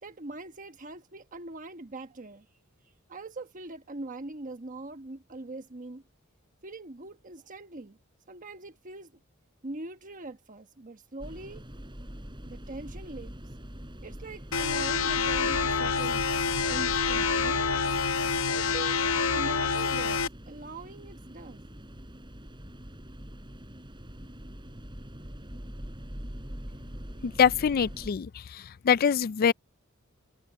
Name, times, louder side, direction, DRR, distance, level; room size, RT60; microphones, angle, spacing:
voice 1, 0.0-2.4 3.1-6.0 6.6-8.0 8.3-9.1 9.6-11.6 12.5-13.3 14.0-16.3 16.6-17.7 18.5-21.6, right 2 dB, 40° right, 1.2 m, -42 dB
sound 1, 11.2-28.1, equal, 25° right, 4.5 m, -43 dB
sound 2, 14.5-20.3, left 5 dB, 70° left, 1.0 m, -27 dB
voice 2, 27.2-28.3 28.8-29.5, left 7 dB, 45° left, 0.4 m, -23 dB
head